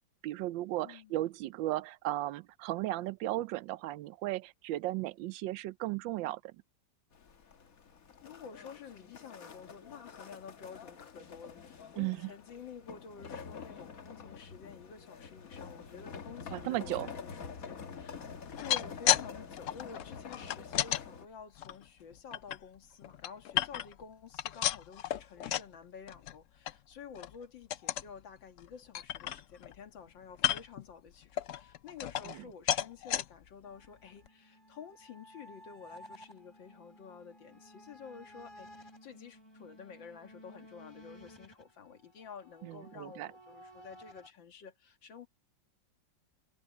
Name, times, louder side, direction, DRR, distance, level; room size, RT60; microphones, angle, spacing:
voice 1, 0.2-6.5 12.0-12.3 16.5-17.1 42.6-43.3, right 16 dB, 90° right, 1.3 m, -35 dB
voice 2, 0.8-1.2 8.2-18.2 18.6-45.3, left 6 dB, 85° left, 2.4 m, -51 dB
sound 1, 7.1-21.3, left 6 dB, 50° left, 1.7 m, -47 dB
sound 2, 18.4-19.3 19.5-21.0 21.6-22.6 23.0-24.0 24.3-25.7 26.1-26.3 26.7-26.8 27.1-27.4 27.7-28.1 28.6-28.7 28.9-29.8 30.3-30.8 31.4-32.4 32.7-33.2 33.8-33.9 34.3-34.4, left 11 dB, 70° left, 0.7 m, -32 dB
sound 3, 33.6-44.3, equal, 15° left, 4.9 m, -55 dB
omnidirectional pair, 2.0 m